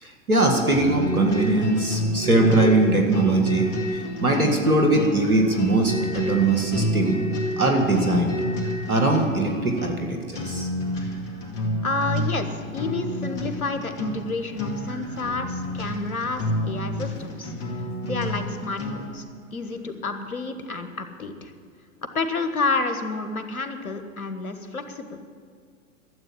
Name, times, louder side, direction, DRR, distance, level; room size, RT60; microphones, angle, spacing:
voice 1, 0.0-7.2 7.6-8.4 8.9-10.7, right 2 dB, 90° right, 3 dB, 2.0 m, -21 dB
sound 1, 0.7-19.2, equal, 45° left, 2.7 m, -29 dB
voice 2, 11.8-17.5 18.0-19.2 19.5-21.5 22.1-25.2, left 3 dB, 80° left, 8 dB, 1.5 m, -30 dB
12.5 x 8.1 x 9.9 m, 2.1 s
figure-of-eight pair, 105°, 42 cm